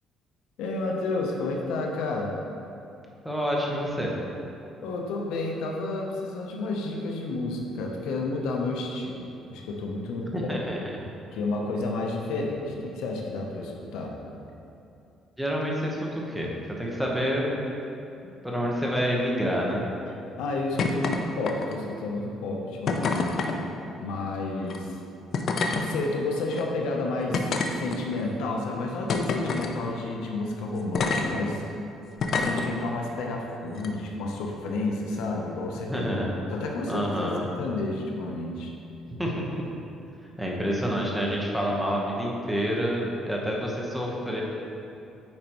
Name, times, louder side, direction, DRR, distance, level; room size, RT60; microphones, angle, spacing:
voice 1, 0.6-2.4 4.8-10.5 11.3-14.2 17.0-17.1 20.4-23.6 24.0-25.0 25.7-31.7 32.3-36.1 36.5-38.7, left 2 dB, 85° left, 0 dB, 0.8 m, -31 dB
voice 2, 3.2-4.1 10.3-11.0 15.4-16.5 16.8-17.7 18.2-19.9 35.9-36.3 36.9-37.5 39.1-39.7 40.4-44.4, equal, ahead, -3 dB, 1.1 m, -28 dB
sound 1, 20.8-21.2 21.4-21.9 22.9-23.6 24.6-24.8 25.3-25.8 26.5-26.6 27.3-28.2 29.1-29.7 30.9-31.2 32.2-32.7 33.7-33.9, left 4 dB, 55° left, 0.5 m, -27 dB
8.7 x 5.0 x 3.1 m, 2.7 s
cardioid pair, 110°, 0 cm